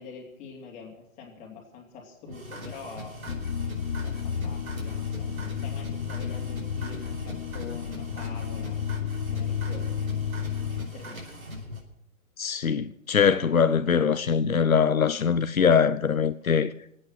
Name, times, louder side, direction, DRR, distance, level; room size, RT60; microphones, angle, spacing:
voice 1, 0.0-3.1 4.0-10.0 10.9-11.2, left 5 dB, 20° left, 3.2 m, -45 dB
sound 1, 2.3-11.8, equal, 85° right, 5.1 m, -41 dB
sound 2, 3.3-10.9, left 7 dB, 45° left, 0.9 m, -31 dB
voice 2, 12.4-16.7, left 6 dB, 90° left, 0.9 m, -22 dB
24.5 x 8.9 x 6.5 m
hypercardioid pair, 145°, 40 cm